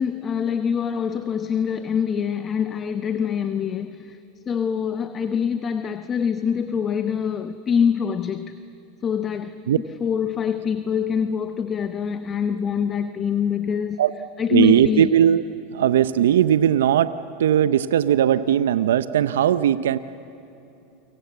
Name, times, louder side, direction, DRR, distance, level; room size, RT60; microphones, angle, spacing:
voice 1, 0.0-4.2 4.5-8.6 9.0-9.6 10.0-14.0 14.4-15.1, left 7 dB, 30° left, 10 dB, 1.0 m, -24 dB
voice 2, 14.5-15.4 15.7-20.0, right 10 dB, 80° right, 13 dB, 0.7 m, -18 dB
29.0 x 25.0 x 8.1 m, 2.9 s
hypercardioid pair, 100°, 0 cm